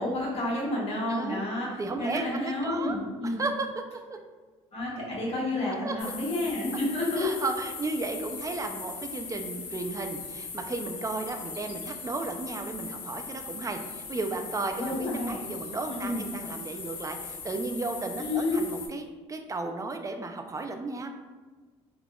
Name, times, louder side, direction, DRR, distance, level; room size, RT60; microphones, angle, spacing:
voice 1, 0.0-3.4 4.7-7.3 14.8-15.4 16.0-16.2 18.2-18.6, left 2 dB, 45° left, -5 dB, 1.2 m, -30 dB
voice 2, 1.1-1.5 1.8-3.0 3.2-3.7 3.9-4.2 5.8-6.0 6.7-6.8 7.2-21.1, right 3 dB, 25° right, 5 dB, 0.4 m, -34 dB
sound 1, 6.0-18.9, left 5 dB, 65° left, 0.6 m, -40 dB
3.3 x 2.3 x 2.3 m, 1.3 s
supercardioid pair, 65°, 14 cm